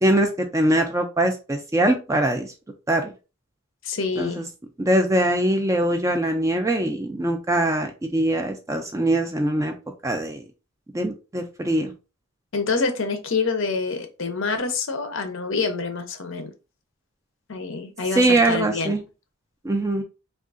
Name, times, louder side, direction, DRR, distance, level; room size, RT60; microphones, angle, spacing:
voice 1, 0.0-2.5 2.9-3.1 4.2-4.4 4.8-9.7 10.0-10.4 10.9-11.9 18.1-19.0 19.6-20.0, right 1 dB, 15° right, 5 dB, 0.3 m, -22 dB
voice 2, 3.8-4.4 12.5-16.5 17.5-19.0, left 4 dB, 60° left, 7 dB, 0.6 m, -26 dB
3.5 x 2.3 x 2.4 m, 0.31 s
head